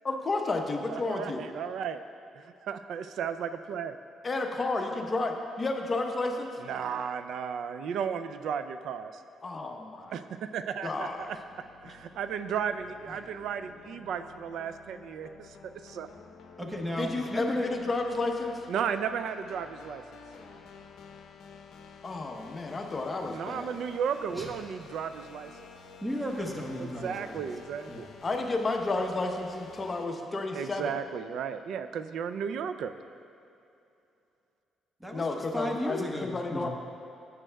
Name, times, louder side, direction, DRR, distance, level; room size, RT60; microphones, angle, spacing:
voice 1, 0.0-1.4 4.2-6.5 9.4-10.1 10.8-11.3 17.0-18.6 22.0-23.8 28.2-30.9 35.1-36.7, left 3 dB, 35° left, 3 dB, 0.8 m, -31 dB
voice 2, 0.9-2.0 2.3-4.0 6.6-9.1 10.1-11.1 11.8-16.1 18.7-20.0 23.3-25.5 26.8-28.1 30.5-32.9, right 7 dB, 75° right, 11 dB, 0.4 m, -34 dB
sound 1, 11.1-30.1, left 5 dB, 75° left, 0.7 m, -51 dB
voice 3, 16.6-17.7 24.3-24.5 26.0-27.5 27.9-28.1 35.0-36.7, equal, 10° right, 0 dB, 1.2 m, -34 dB
12.5 x 8.8 x 2.3 m, 2.7 s
cardioid pair, 90°, 0 cm